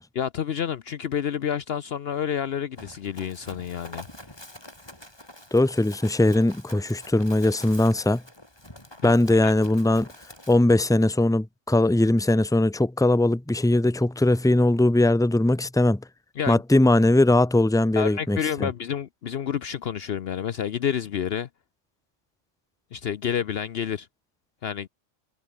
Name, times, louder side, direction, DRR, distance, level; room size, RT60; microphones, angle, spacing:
voice 1, 0.1-4.1 9.0-9.1 9.4-9.5 16.4-16.6 18.0-21.5 22.9-24.1 24.6-24.9, left 8 dB, 60° left, 0.9 m, -29 dB
Run, 2.8-10.6, left 1 dB, 20° left, 4.3 m, -46 dB
voice 2, 5.5-8.2 9.0-10.1 10.5-16.0 16.5-18.7, left 1 dB, 5° left, 1.0 m, -20 dB
omnidirectional pair, 1.3 m